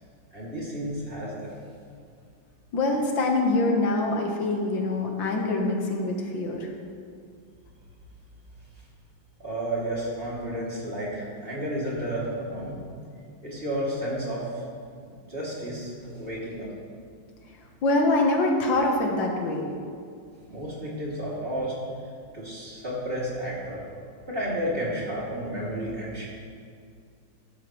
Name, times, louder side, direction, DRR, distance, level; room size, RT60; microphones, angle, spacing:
voice 1, 0.3-1.6 9.4-12.8 13.4-14.6 15.3-16.7 20.4-21.7 22.3-23.8 24.3-26.3, right 1 dB, 30° right, -7 dB, 3.1 m, -32 dB
voice 2, 2.7-6.7 17.8-19.7, left 2 dB, 85° left, 1 dB, 2.1 m, -24 dB
15.5 x 12.0 x 3.2 m, 2.3 s
omnidirectional pair, 2.0 m